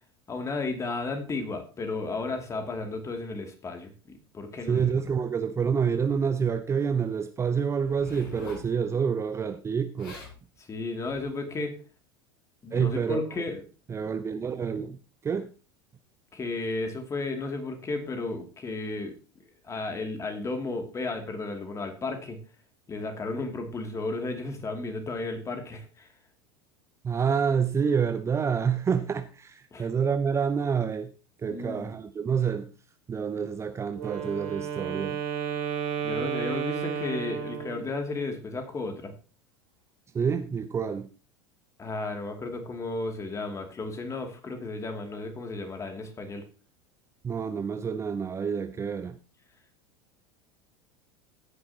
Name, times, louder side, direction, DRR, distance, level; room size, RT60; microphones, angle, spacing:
voice 1, 0.3-4.8 10.6-11.8 12.6-13.6 16.3-19.1 19.6-22.4 22.9-26.1 29.7-29.9 31.5-31.9 36.0-39.1 41.8-46.4, left 3 dB, 20° left, 2.7 m, -33 dB
voice 2, 4.7-10.2 12.7-13.2 13.9-15.5 27.0-31.1 31.4-32.7 33.1-35.2 40.1-41.1 47.2-49.2, right 6 dB, 20° right, 0.7 m, -28 dB
Zipper (clothing), 7.8-8.7 9.7-9.8 10.0-10.4 11.1-11.3, left 3 dB, 60° left, 7.0 m, -43 dB
Wind instrument woodwind instrument, 33.9-38.1, right 8 dB, 60° right, 3.2 m, -32 dB
16.0 x 9.8 x 2.9 m
figure-of-eight pair, 80°, 13 cm